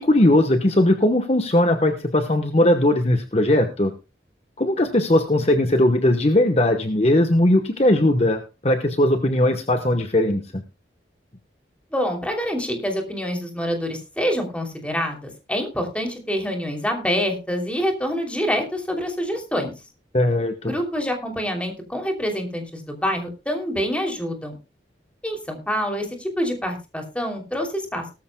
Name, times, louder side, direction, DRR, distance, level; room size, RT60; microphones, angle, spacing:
voice 1, 0.0-3.9 4.6-10.6 20.1-20.7, left 1 dB, 35° left, 7 dB, 1.1 m, -19 dB
voice 2, 11.9-19.7 20.6-24.6 25.2-28.1, equal, 5° left, 3 dB, 2.9 m, -26 dB
18.5 x 13.5 x 2.2 m, 0.29 s
head